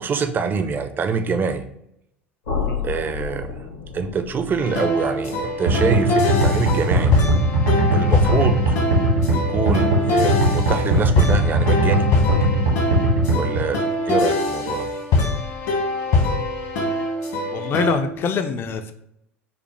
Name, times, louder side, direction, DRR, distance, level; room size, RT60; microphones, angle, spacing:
voice 1, 0.0-1.7 2.8-3.5 3.9-7.1 7.9-8.8 9.3-12.1 13.3-14.9, right 5 dB, 30° right, 8 dB, 0.4 m, -25 dB
sound 1, 2.4-8.3, left 6 dB, 80° left, 1.3 m, -33 dB
sound 2, 4.6-17.9, left 2 dB, 60° left, 1.1 m, -23 dB
sound 3, 5.7-13.6, right 1 dB, 85° right, 1.4 m, -19 dB
voice 2, 17.5-18.9, left 5 dB, 35° left, 8 dB, 0.4 m, -24 dB
5.6 x 2.0 x 3.2 m, 0.76 s
figure-of-eight pair, 70°, 7 cm